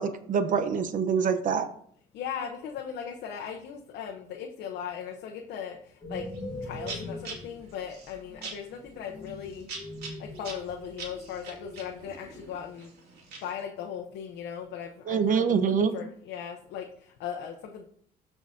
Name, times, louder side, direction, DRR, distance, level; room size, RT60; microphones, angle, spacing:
voice 1, 0.0-1.7 15.1-15.9, right 6 dB, 50° right, 10 dB, 0.9 m, -25 dB
voice 2, 2.1-6.2 6.6-9.7 10.2-12.9 13.4-17.8, left 8 dB, 80° left, 2 dB, 0.9 m, -38 dB
sound 1, 6.0-12.7, left 1 dB, 10° left, 2.9 m, -42 dB
sound 2, 6.3-6.5 6.8-13.6, right 4 dB, 70° right, 2.4 m, -44 dB
13.0 x 4.8 x 2.8 m, 0.63 s
cardioid pair, 110°, 17 cm